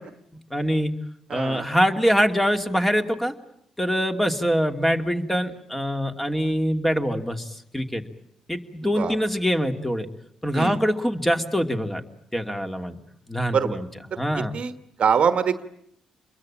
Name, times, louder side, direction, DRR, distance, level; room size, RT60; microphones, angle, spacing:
voice 1, 0.5-0.9 1.3-3.3 3.8-7.5 7.7-8.0 8.5-10.1 10.4-12.0 12.3-13.0 13.3-13.9 14.2-14.5, equal, 10° left, 5 dB, 2.7 m, -24 dB
voice 2, 1.3-1.6 8.9-9.2 10.5-10.8 13.5-13.8 14.4-14.7 15.0-15.6, right 7 dB, 55° right, 11 dB, 1.3 m, -23 dB
27.0 x 22.5 x 8.8 m, 0.72 s
hypercardioid pair, 45°, 2 cm